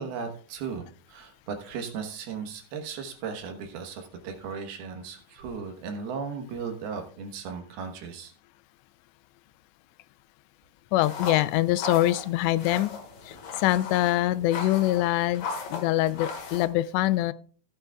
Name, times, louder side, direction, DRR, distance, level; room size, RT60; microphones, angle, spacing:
voice 1, 0.0-8.3, right 5 dB, 70° right, 4 dB, 2.9 m, -36 dB
voice 2, 10.9-12.9 13.2-17.3, left 15 dB, 90° left, 16 dB, 2.8 m, -24 dB
sound 1, 11.0-16.6, left 4 dB, 60° left, 2.9 m, -38 dB
16.0 x 8.8 x 2.3 m, 0.42 s
omnidirectional pair, 5.0 m